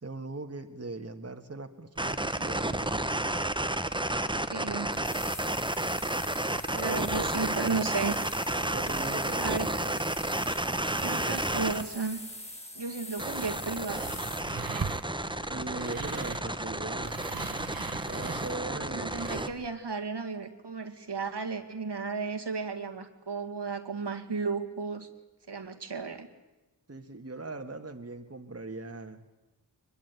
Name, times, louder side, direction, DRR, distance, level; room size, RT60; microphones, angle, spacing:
voice 1, 0.0-3.1 6.6-7.3 8.7-10.0 15.5-17.2 18.1-19.2 26.9-29.2, right 3 dB, 35° right, 6 dB, 1.8 m, -40 dB
sound 1, 2.0-11.8 13.2-19.5, right 1 dB, 10° right, 1.2 m, -32 dB
voice 2, 4.5-4.9 6.8-8.2 9.4-9.7 11.0-12.2 12.7-14.1 18.7-25.1 25.5-26.3, right 4 dB, 80° right, 6 dB, 2.2 m, -34 dB
sound 2, 4.9-14.5, left 1 dB, 15° left, 4.7 m, -43 dB
sound 3, 13.3-19.7, right 5 dB, 55° right, 1.5 m, -41 dB
23.0 x 22.0 x 9.3 m, 1.1 s
wide cardioid pair, 65°, 41 cm